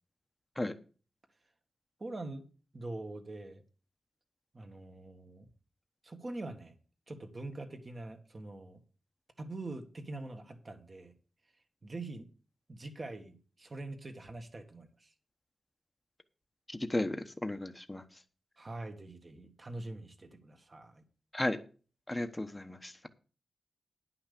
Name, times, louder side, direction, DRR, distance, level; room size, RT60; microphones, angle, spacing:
voice 1, 2.0-2.4 2.7-3.6 4.5-5.5 6.0-6.8 7.1-8.8 9.4-11.1 11.8-12.3 12.7-15.1 18.6-21.0, right 2 dB, 35° right, 6 dB, 1.6 m, -44 dB
voice 2, 16.7-18.0 21.3-21.6 22.1-23.1, left 1 dB, 15° left, 9 dB, 1.0 m, -34 dB
11.0 x 5.8 x 6.8 m, 0.37 s
wide cardioid pair, 125°, 0 cm